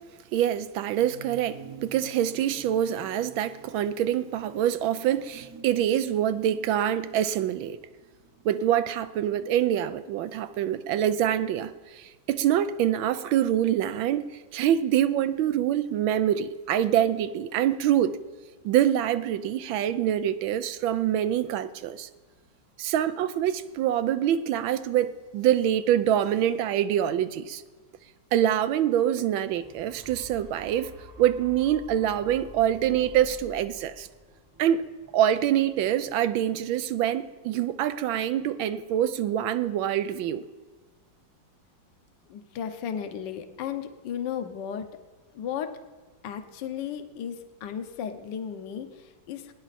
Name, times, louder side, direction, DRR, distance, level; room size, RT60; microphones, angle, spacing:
voice 1, 0.3-7.8 8.4-18.2 18.6-22.1 22.8-27.6 28.3-30.9 31.2-34.1 34.6-34.8 35.1-40.4, right 11 dB, 85° right, 1.4 m, -25 dB
sound 1, 1.0-10.8 11.1-11.2, right 6 dB, 45° right, 1.2 m, -50 dB
sound 2, 29.2-37.3 37.8-37.9, equal, 15° right, 0.6 m, -50 dB
voice 2, 42.3-45.0 45.3-45.8 46.2-49.5, left 8 dB, 70° left, 1.5 m, -35 dB
18.5 x 10.0 x 4.2 m
omnidirectional pair, 2.1 m